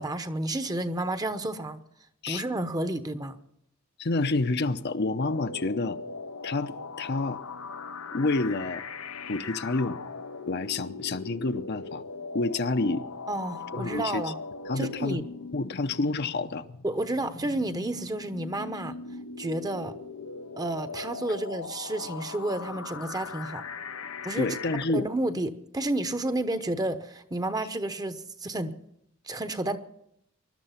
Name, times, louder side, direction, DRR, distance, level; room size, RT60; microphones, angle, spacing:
voice 1, 0.0-1.8 2.3-3.4 13.3-14.4 14.8-15.2 16.8-18.9 19.4-20.0 20.6-23.6 24.2-24.6 24.9-28.8 29.2-29.8, right 1 dB, 20° right, 0.9 m, -31 dB
voice 2, 4.0-6.0 6.4-7.4 8.1-8.8 9.3-10.0 10.5-12.0 12.3-13.0 13.7-14.2 14.7-15.2 15.5-16.7 24.4-25.1, left 3 dB, 55° left, 0.8 m, -28 dB
sound 1, 5.2-24.8, left 4 dB, 90° left, 0.9 m, -40 dB
20.5 x 12.0 x 5.8 m
head